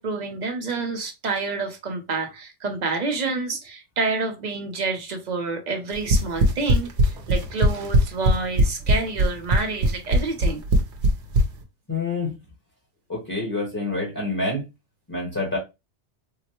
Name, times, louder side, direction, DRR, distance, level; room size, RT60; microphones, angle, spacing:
voice 1, 0.0-6.9 7.3-10.6, right 3 dB, 45° right, 0.7 m, -28 dB
sound 1, 5.9-11.5, right 2 dB, 70° right, 0.9 m, -18 dB
voice 2, 11.9-12.3 13.1-14.6 15.1-15.6, left 2 dB, 20° left, 1.0 m, -27 dB
3.7 x 2.1 x 2.8 m
omnidirectional pair, 1.2 m